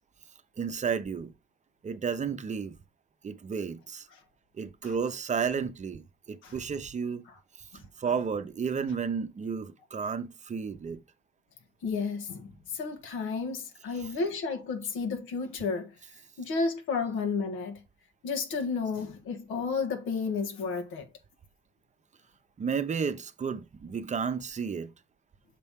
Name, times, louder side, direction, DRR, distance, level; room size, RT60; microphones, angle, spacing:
voice 1, 0.6-1.3 1.8-2.8 3.2-4.1 4.6-7.2 8.0-11.0 14.0-14.2 22.6-24.9, right 6 dB, 35° right, 0.7 m, -32 dB
voice 2, 11.8-15.9 16.4-17.8 18.2-21.1, left 4 dB, 90° left, 1.4 m, -32 dB
6.7 x 4.2 x 3.6 m
cardioid pair, 90°, 20 cm